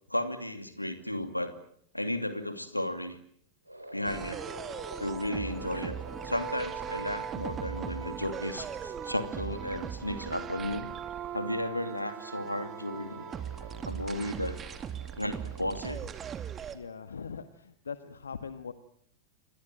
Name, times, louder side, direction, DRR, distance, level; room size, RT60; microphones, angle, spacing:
voice 1, 0.1-1.6 1.9-3.2 3.9-4.4 5.0-6.0 6.2-10.9 11.3-13.2 13.8-14.6 15.2-16.0, left 1 dB, 85° left, 9 dB, 2.6 m, -34 dB
sound 1, 3.6-16.1, right 1 dB, 85° right, 4.4 m, -49 dB
sound 2, 4.0-16.8, right 8 dB, 25° right, 2.5 m, -39 dB
voice 2, 16.7-18.7, left 6 dB, 70° left, 11 dB, 1.5 m, -41 dB
28.5 x 23.0 x 7.8 m, 0.67 s
figure-of-eight pair, 90°, 0 cm